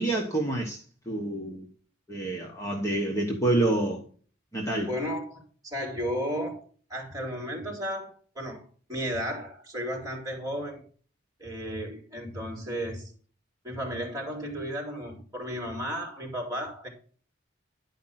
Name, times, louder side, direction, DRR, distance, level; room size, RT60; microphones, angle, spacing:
voice 1, 0.0-1.7 2.1-4.0 4.5-4.9, right 2 dB, 15° left, 1.3 m, -28 dB
voice 2, 4.9-10.8 11.4-13.1 13.6-16.9, equal, 20° right, 3.8 m, -34 dB
11.5 x 5.1 x 5.8 m
head